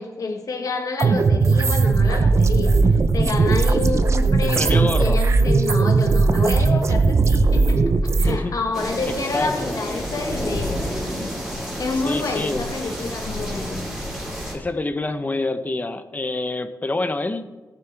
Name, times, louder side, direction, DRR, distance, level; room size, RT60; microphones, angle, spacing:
voice 1, 0.0-10.9 11.5-13.8, left 3 dB, 55° left, 3 dB, 1.4 m, -28 dB
sound 1, 1.0-8.4, right 4 dB, 45° right, 0.7 m, -18 dB
voice 2, 4.4-5.2 8.1-8.6 9.1-9.8 12.1-12.7 14.5-17.4, left 2 dB, 25° left, 10 dB, 0.7 m, -27 dB
sound 2, 8.7-14.5, equal, 5° right, 3.5 m, -29 dB
18.0 x 6.9 x 4.6 m, 1.2 s
wide cardioid pair, 130°, 7 cm